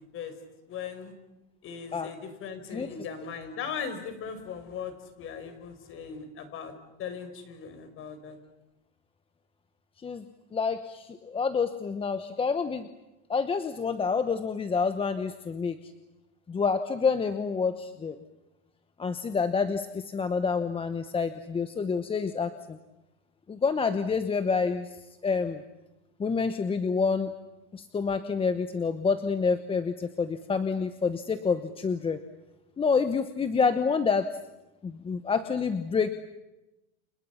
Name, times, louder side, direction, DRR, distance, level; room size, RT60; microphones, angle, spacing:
voice 1, 0.7-1.1 1.6-6.7 7.0-8.4, left 6 dB, 35° left, 8 dB, 4.9 m, -38 dB
voice 2, 10.5-12.9 13.3-15.8 16.5-18.2 19.0-22.8 23.5-24.9 25.2-25.6 26.2-27.3 27.7-32.2 32.8-34.3 34.8-36.1, left 5 dB, 15° left, 10 dB, 1.1 m, -28 dB
30.0 x 29.0 x 5.8 m, 0.99 s
supercardioid pair, 135°, 34 cm